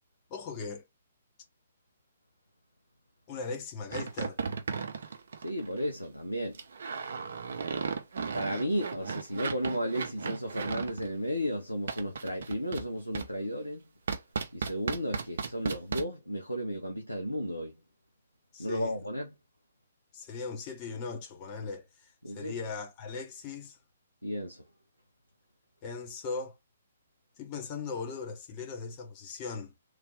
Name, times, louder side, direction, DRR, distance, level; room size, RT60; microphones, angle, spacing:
voice 1, 0.3-0.8 3.3-4.4 18.5-18.9 20.1-23.8 25.8-26.6 27.4-29.7, left 4 dB, 30° left, 0.9 m, -39 dB
sound 1, 3.9-5.9 6.5-11.1 11.9-12.9 13.1-13.3 14.1-16.0, right 5 dB, 55° right, 0.5 m, -35 dB
voice 2, 5.4-6.6 8.3-13.8 14.5-17.7 18.6-19.3 22.2-22.5 24.2-24.6, equal, 90° left, 0.7 m, -33 dB
3.2 x 2.5 x 3.4 m
figure-of-eight pair, 125°, 0 cm